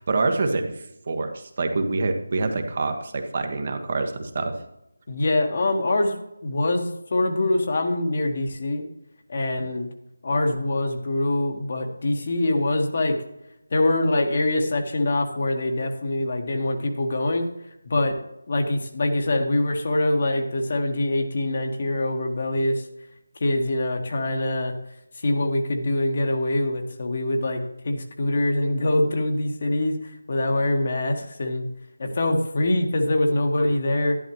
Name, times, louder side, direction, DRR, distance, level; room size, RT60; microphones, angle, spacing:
voice 1, 0.0-4.6 9.6-9.7, right 3 dB, 45° right, 5 dB, 1.3 m, -26 dB
voice 2, 5.1-6.2 6.4-8.8 9.3-9.9 10.2-13.2 13.7-17.5 17.8-18.2 18.5-22.9 23.3-24.7 25.2-31.7 32.0-34.2, left 1 dB, 45° left, 4 dB, 1.5 m, -24 dB
11.0 x 11.0 x 3.1 m, 0.85 s
figure-of-eight pair, 160°, 0 cm